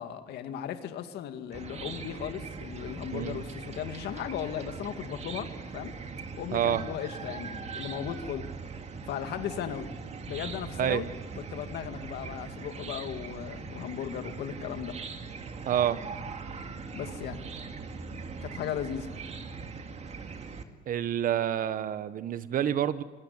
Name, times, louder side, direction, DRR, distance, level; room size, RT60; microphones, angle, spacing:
voice 1, 0.0-6.0 6.4-8.5 9.1-9.9 10.3-11.1 11.5-15.0 16.9-17.4 18.4-19.1, left 9 dB, 75° left, 9 dB, 2.2 m, -36 dB
Chicken rooster / Cricket, 1.5-20.6, right 5 dB, 40° right, 2.4 m, -40 dB
voice 2, 6.5-6.8 10.8-11.0 15.7-16.0 20.9-23.0, right 10 dB, 55° right, 14 dB, 1.3 m, -28 dB
27.0 x 22.0 x 9.7 m, 1.2 s
cardioid pair, 110°, 17 cm